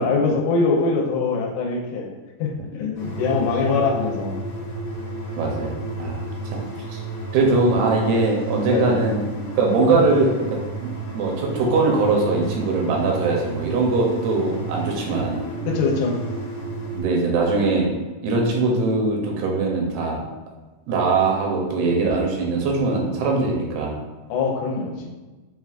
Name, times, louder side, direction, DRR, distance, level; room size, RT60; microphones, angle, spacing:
voice 1, 0.0-2.1 2.4-4.4 8.7-9.0 15.7-16.2 24.3-25.1, left 4 dB, 85° left, -1 dB, 2.8 m, -23 dB
sound 1, 3.0-17.0, right 2 dB, 70° left, 2.7 m, -32 dB
voice 2, 5.4-6.2 6.5-6.6 6.9-7.0 7.3-9.2 9.5-15.4 16.9-17.9 18.2-20.2 20.9-24.0, right 3 dB, 80° right, -1 dB, 2.5 m, -21 dB
7.0 x 2.4 x 2.4 m, 1.2 s
omnidirectional pair, 4.7 m